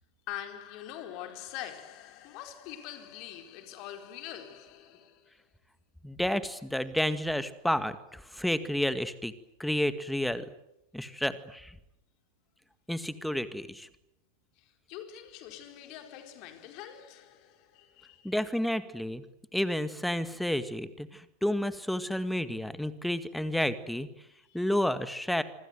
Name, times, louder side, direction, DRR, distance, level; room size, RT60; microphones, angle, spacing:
voice 1, 0.3-5.3 14.6-18.4 24.5-24.6, left 11 dB, 40° left, 4.5 m, -44 dB
voice 2, 6.0-9.3 9.6-10.5 10.9-11.8 12.9-13.9 18.2-19.2 19.5-24.1 24.5-25.4, left 1 dB, ahead, 2.0 m, -30 dB
27.0 x 26.0 x 8.0 m
figure-of-eight pair, 90°, 0 cm